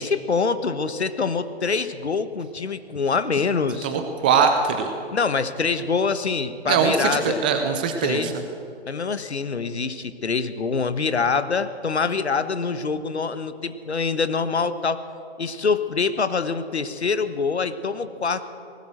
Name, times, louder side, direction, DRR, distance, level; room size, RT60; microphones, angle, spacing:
voice 1, 0.0-3.9 5.1-7.4 8.0-8.4 8.9-15.0 15.4-18.4, left 5 dB, 75° left, 12 dB, 1.3 m, -25 dB
voice 2, 3.8-4.9 6.7-8.3, right 6 dB, 10° right, 6 dB, 0.4 m, -21 dB
19.0 x 18.0 x 7.9 m, 2.6 s
figure-of-eight pair, 130°, 33 cm